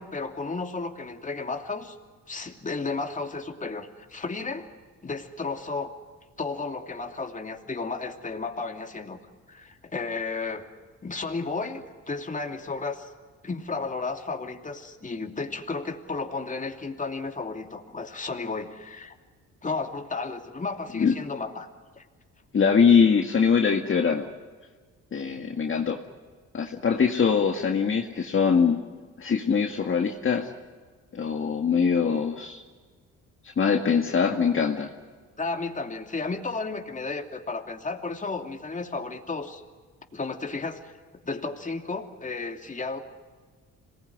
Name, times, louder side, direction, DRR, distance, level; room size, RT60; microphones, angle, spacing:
voice 1, 0.0-2.0 2.3-4.7 5.0-5.9 6.4-9.2 9.5-10.7 11.0-13.1 13.4-19.1 19.6-21.7 22.0-22.1 35.4-39.6 40.1-41.0 41.2-43.0, left 3 dB, 25° left, 4 dB, 2.8 m, -33 dB
voice 2, 22.5-24.3 25.1-26.0 26.5-28.8 29.2-30.5 31.1-32.6 33.6-34.9, left 6 dB, 40° left, 2 dB, 2.0 m, -22 dB
26.5 x 19.5 x 9.5 m, 1.5 s
cardioid pair, 90°, 30 cm